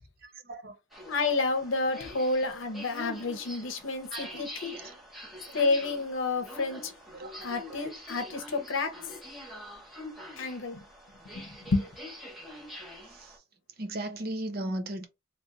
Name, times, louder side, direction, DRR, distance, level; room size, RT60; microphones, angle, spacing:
voice 1, 0.2-0.7 4.1-4.4 4.7-4.9 5.5-5.6 7.1-7.8 13.2-13.3 13.8-15.1, right 1 dB, 50° right, 0.6 m, -37 dB
sound 1, 0.9-13.4, left 1 dB, ahead, 0.9 m, -45 dB
voice 2, 1.1-4.8 5.5-6.9 7.4-9.0 10.4-10.8 11.3-11.8, left 3 dB, 75° left, 0.8 m, -30 dB
3.0 x 2.9 x 2.5 m
head